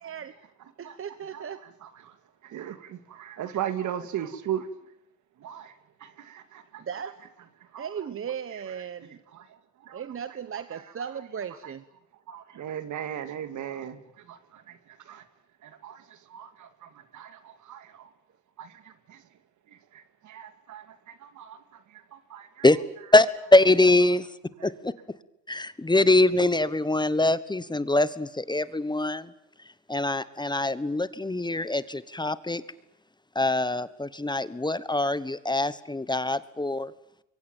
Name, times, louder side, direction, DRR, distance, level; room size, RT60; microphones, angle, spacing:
voice 1, 0.8-1.6 6.8-7.2 7.8-9.2 9.9-11.8, right 8 dB, 45° right, 1.2 m, -36 dB
voice 2, 1.3-2.2 2.4-4.7 5.4-6.8 7.7-7.9 8.5-8.6 9.3-10.0 10.7-10.8 11.6-11.7 12.3-15.3 15.6-18.1 18.6-19.2 19.7-22.7 24.6-24.7, right 10 dB, 75° right, 2.3 m, -38 dB
voice 3, 23.5-24.3 24.6-24.9 25.5-29.3 29.9-32.6 33.3-36.9, left 2 dB, 15° left, 1.2 m, -23 dB
25.0 x 23.0 x 9.0 m
cardioid pair, 90°, 30 cm